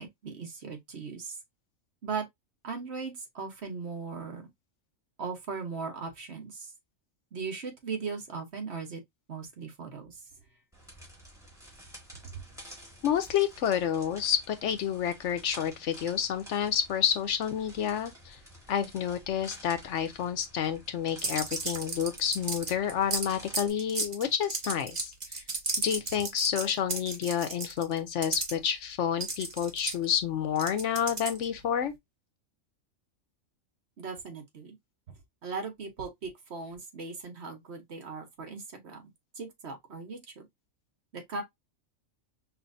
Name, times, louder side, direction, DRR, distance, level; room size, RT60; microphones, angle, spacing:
voice 1, 0.0-1.4 2.0-2.2 2.6-4.5 5.2-6.7 7.3-9.0 9.3-10.2 12.2-12.4 34.0-34.7 35.4-39.0 39.4-40.5 41.1-41.4, right 5 dB, 55° right, 1.3 m, -38 dB
sound 1, 10.7-23.7, equal, ahead, 1.5 m, -51 dB
voice 2, 13.0-18.4 18.7-25.4 25.8-31.9, left 9 dB, 70° left, 0.9 m, -29 dB
sound 2, 21.2-28.5 29.2-31.6, right 3 dB, 35° right, 1.1 m, -33 dB
5.6 x 2.5 x 2.6 m
omnidirectional pair, 1.4 m